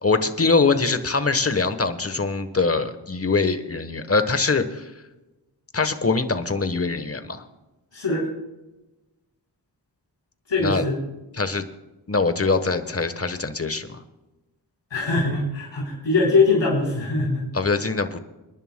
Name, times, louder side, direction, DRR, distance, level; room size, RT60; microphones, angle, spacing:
voice 1, 0.0-4.9 5.7-7.4 10.6-10.8 11.4-11.6 12.1-14.0 17.5-18.2, left 4 dB, 30° left, 10 dB, 1.2 m, -23 dB
voice 2, 7.9-8.3 10.5-11.0 14.9-17.4, left 3 dB, 85° left, -4 dB, 3.6 m, -22 dB
28.5 x 11.0 x 2.2 m, 1.1 s
wide cardioid pair, 55°, 43 cm